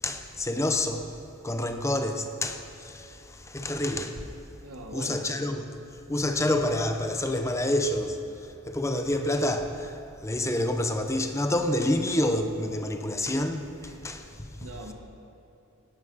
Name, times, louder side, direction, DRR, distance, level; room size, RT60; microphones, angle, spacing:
voice 1, 0.0-1.1 1.4-4.3 4.9-5.8 6.1-14.7, left 1 dB, 15° left, 0.8 m, -28 dB
voice 2, 4.6-5.2 13.8-14.0 14.6-14.9, right 2 dB, 70° right, 1.5 m, -41 dB
17.0 x 12.0 x 4.0 m
head